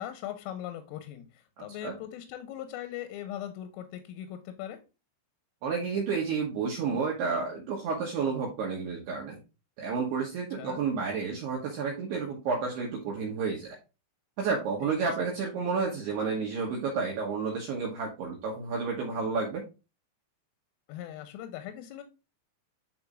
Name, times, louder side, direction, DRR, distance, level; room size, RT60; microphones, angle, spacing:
voice 1, 0.0-4.8 10.6-10.8 14.8-15.0 20.9-22.0, left 11 dB, 90° left, 8 dB, 3.3 m, -40 dB
voice 2, 1.6-1.9 5.6-9.4 9.8-13.8 14.4-19.6, right 5 dB, 70° right, -2 dB, 2.7 m, -31 dB
11.0 x 4.3 x 2.4 m, 0.29 s
omnidirectional pair, 5.9 m